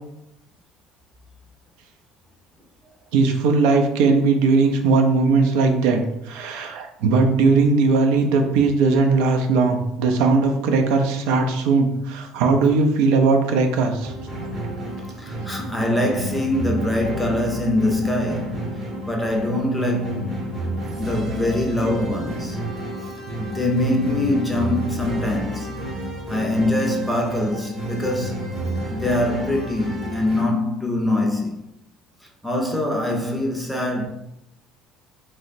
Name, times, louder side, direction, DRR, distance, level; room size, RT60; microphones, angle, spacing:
voice 1, 3.1-6.0 6.3-14.1, right 4 dB, 85° right, 0.5 m, -19 dB
sound 1, 14.0-30.5, right 1 dB, 30° right, 0.8 m, -31 dB
voice 2, 15.2-20.7 21.0-22.7 23.0-23.1 23.4-25.7 26.3-28.5 28.9-31.6 32.2-34.1, left 1 dB, 5° left, 0.5 m, -24 dB
2.9 x 2.0 x 4.1 m
cardioid pair, 160°, 0 cm